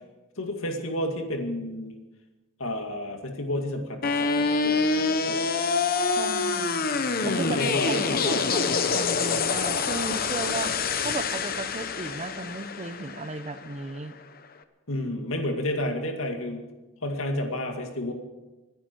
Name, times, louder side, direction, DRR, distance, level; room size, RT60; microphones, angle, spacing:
voice 1, 0.4-1.9 2.6-5.5 7.2-8.6 14.9-16.6 17.0-18.1, left 1 dB, 90° left, 4 dB, 2.2 m, -31 dB
sound 1, 4.0-14.1, left 4 dB, 45° left, 0.9 m, -26 dB
voice 2, 6.1-6.9 7.2-10.7 11.0-14.1, right 2 dB, 35° right, 11 dB, 0.9 m, -35 dB
26.0 x 10.5 x 4.7 m, 1.1 s
head